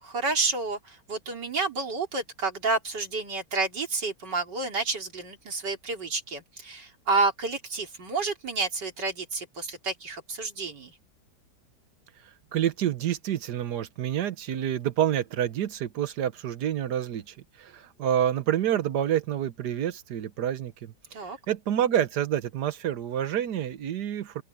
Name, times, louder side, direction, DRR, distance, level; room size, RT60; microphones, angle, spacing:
voice 1, 0.0-10.9 21.1-21.4, right 3 dB, 90° right, 4.1 m, -30 dB
voice 2, 12.5-20.9 21.5-24.4, right 10 dB, 75° right, 1.6 m, -28 dB
open air
omnidirectional pair, 1.8 m